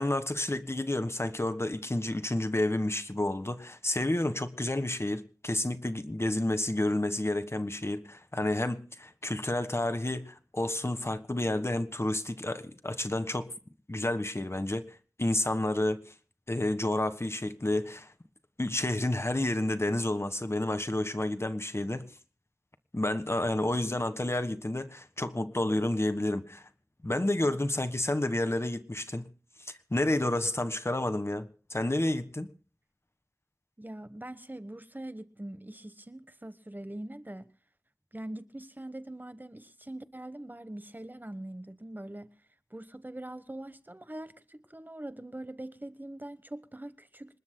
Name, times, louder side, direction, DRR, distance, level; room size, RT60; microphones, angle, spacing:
voice 1, 0.0-13.5 13.9-14.8 15.2-16.1 16.5-18.1 18.6-22.1 22.9-26.6 27.0-29.3 29.9-32.5, left 1 dB, 45° left, 1.4 m, -30 dB
voice 2, 33.8-37.5 38.1-42.3 42.7-47.4, right 1 dB, 30° right, 1.1 m, -43 dB
26.5 x 20.5 x 2.2 m
wide cardioid pair, 45°, 6 cm